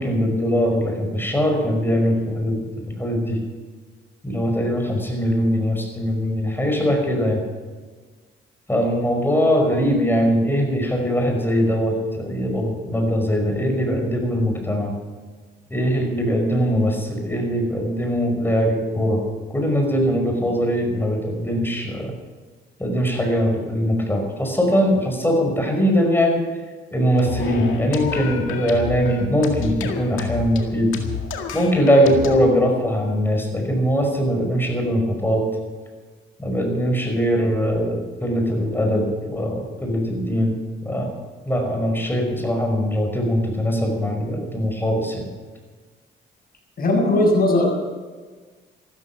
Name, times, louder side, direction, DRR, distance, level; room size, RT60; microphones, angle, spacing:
voice 1, 0.0-3.4 4.2-7.4 8.7-14.9 15.7-19.2 19.5-22.1 22.8-26.4 26.9-30.9 31.5-35.4 36.4-40.5 40.8-41.1 41.5-45.3, equal, 10° left, 2 dB, 5.4 m, -21 dB
sound 1, 27.2-32.4, left 5 dB, 90° left, 2.0 m, -29 dB
voice 2, 46.8-47.7, left 1 dB, 50° left, 0 dB, 6.7 m, -18 dB
15.0 x 13.5 x 6.1 m, 1.4 s
cardioid pair, 90°, 20 cm